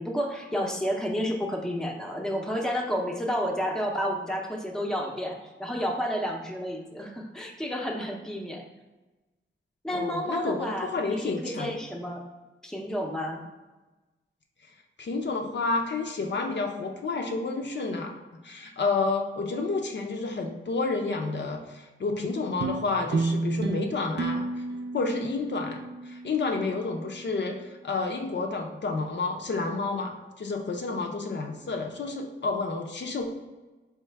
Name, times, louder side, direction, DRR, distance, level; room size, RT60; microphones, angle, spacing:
voice 1, 0.0-8.6 9.8-12.3 12.6-13.4, equal, 5° left, 0 dB, 0.6 m, -31 dB
voice 2, 9.9-11.7 15.0-18.1 18.4-24.6 24.9-33.4, left 3 dB, 60° left, 2 dB, 0.6 m, -30 dB
sound 1, 22.6-27.2, right 3 dB, 60° right, 0.4 m, -32 dB
4.6 x 3.1 x 3.3 m, 1.1 s
wide cardioid pair, 100°, 20 cm